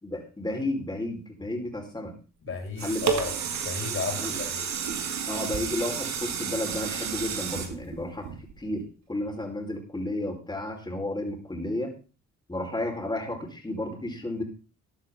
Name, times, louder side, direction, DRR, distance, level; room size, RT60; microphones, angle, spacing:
voice 1, 0.0-2.1 2.8-3.2 4.1-4.3 5.3-11.9 12.5-14.4, left 1 dB, 15° left, 2 dB, 4.4 m, -32 dB
voice 2, 2.5-4.7, left 4 dB, 45° left, 2 dB, 6.2 m, -33 dB
sound 1, 2.5-8.8 9.3-9.4, right 7 dB, 65° right, 2.3 m, -31 dB
14.0 x 10.5 x 3.8 m, 0.34 s
cardioid pair, 90°, 30 cm